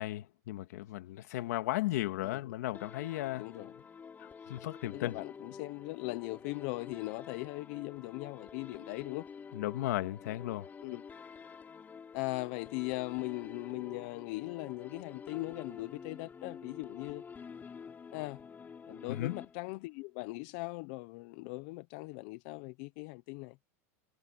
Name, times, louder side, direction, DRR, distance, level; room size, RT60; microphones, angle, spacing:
voice 1, 0.0-3.5 4.2-5.2 9.5-10.7 19.1-19.3, left 16 dB, 85° left, 2.1 m, -35 dB
sound 1, 2.7-20.0, left 6 dB, 20° left, 3.7 m, -49 dB
voice 2, 3.3-3.8 4.9-9.3 10.8-11.0 12.1-17.2 18.1-18.4 18.9-23.6, left 24 dB, 60° left, 0.7 m, -39 dB
supercardioid pair, 135°, 9 cm